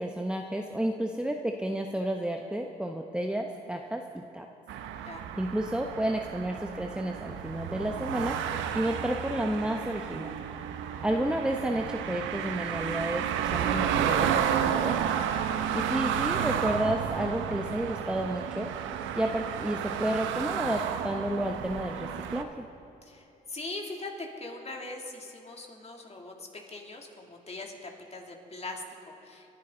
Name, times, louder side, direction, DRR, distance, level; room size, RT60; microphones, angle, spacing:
voice 1, 0.0-4.5 5.4-8.4 8.7-10.3 11.0-15.0 15.7-18.7 19.1-22.6, right 1 dB, 5° right, 3 dB, 1.0 m, -31 dB
sound 1, 4.7-22.4, right 9 dB, 75° right, 0.8 m, -31 dB
voice 2, 23.0-29.5, left 2 dB, 30° left, 1 dB, 2.8 m, -41 dB
27.0 x 11.0 x 3.9 m, 2.8 s
hypercardioid pair, 50°, 20 cm